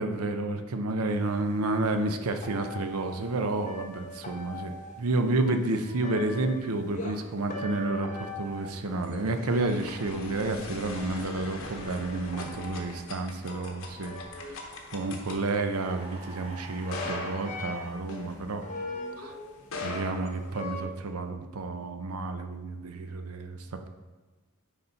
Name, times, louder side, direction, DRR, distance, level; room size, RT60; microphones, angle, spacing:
voice 1, 0.0-14.1 14.4-14.6 14.9-18.6 19.2-19.3 19.8-23.6, right 2 dB, 80° right, 7 dB, 0.7 m, -30 dB
sound 1, 1.4-1.5 1.8-5.1 5.4-7.2 7.5-10.9 11.7-14.8 15.9-16.5 16.9-18.0 18.5-19.6 19.9-20.0 20.5-20.8, left 2 dB, 35° left, 0.9 m, -41 dB
sound 2, 8.6-19.0 19.6-21.1, left 2 dB, 65° left, 1.1 m, -41 dB
sound 3, 15.7-18.0, right 1 dB, 25° right, 1.2 m, -46 dB
9.9 x 4.1 x 4.0 m, 1.2 s
head